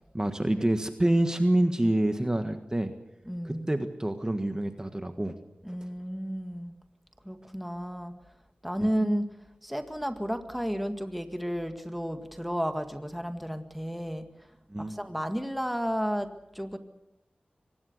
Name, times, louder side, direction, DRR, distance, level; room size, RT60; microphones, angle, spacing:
voice 1, 0.1-2.9 3.4-5.4 8.8-8.9 14.7-15.0, right 1 dB, 20° right, 7 dB, 1.5 m, -27 dB
voice 2, 3.3-3.7 5.6-6.7 7.2-8.1 8.6-9.3 9.6-14.3 14.8-16.8, equal, ahead, 7 dB, 1.8 m, -32 dB
24.0 x 19.5 x 6.7 m, 0.87 s
wide cardioid pair, 70°, 3 cm